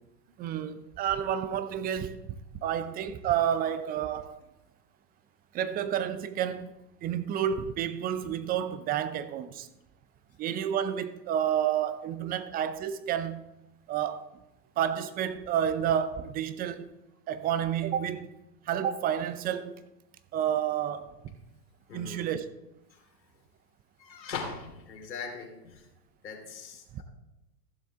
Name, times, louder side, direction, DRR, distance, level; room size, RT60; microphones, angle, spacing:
voice 1, 0.4-2.4 2.6-4.4 5.5-6.7 7.0-9.7 10.4-13.5 13.9-14.3 14.8-16.9 17.3-18.3 18.7-19.8 20.3-21.4 21.9-22.5 26.9-27.0, right 9 dB, 20° right, 0.5 m, -30 dB
voice 2, 21.9-22.3 22.9-23.0 24.0-25.8 26.2-27.0, left 5 dB, 85° left, 2.9 m, -40 dB
15.5 x 7.2 x 3.6 m
hypercardioid pair, 110°, 50 cm